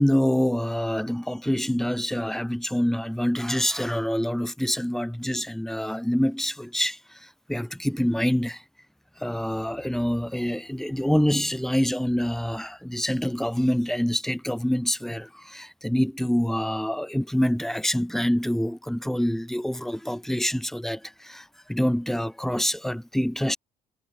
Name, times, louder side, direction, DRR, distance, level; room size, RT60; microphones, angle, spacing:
voice 1, 0.0-8.6 9.2-23.6, equal, ahead, 7.0 m, -26 dB
cardioid pair, 110°, 17 cm